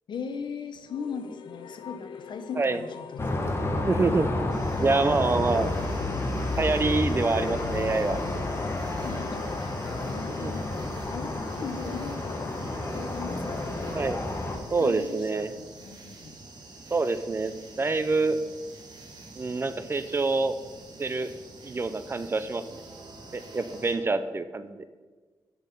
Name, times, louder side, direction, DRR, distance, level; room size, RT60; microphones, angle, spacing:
voice 1, 0.1-3.7 9.0-13.8 14.5-16.4, left 5 dB, 70° left, 8 dB, 0.8 m, -39 dB
sound 1, 0.9-15.1, left 7 dB, 85° left, 0.4 m, -44 dB
sound 2, 3.2-14.6, left 2 dB, 30° left, 1.1 m, -30 dB
voice 2, 3.8-5.7 6.6-8.2 10.4-10.5 13.9-14.3 14.7-15.5 16.9-18.4 19.4-20.6 21.0-21.3 21.6-22.8 23.3-24.8, right 3 dB, 30° right, 11 dB, 0.5 m, -26 dB
sound 3, 4.5-24.0, right 3 dB, 60° right, 1.6 m, -47 dB
8.3 x 6.0 x 5.2 m, 1.4 s
wide cardioid pair, 120°, 8 cm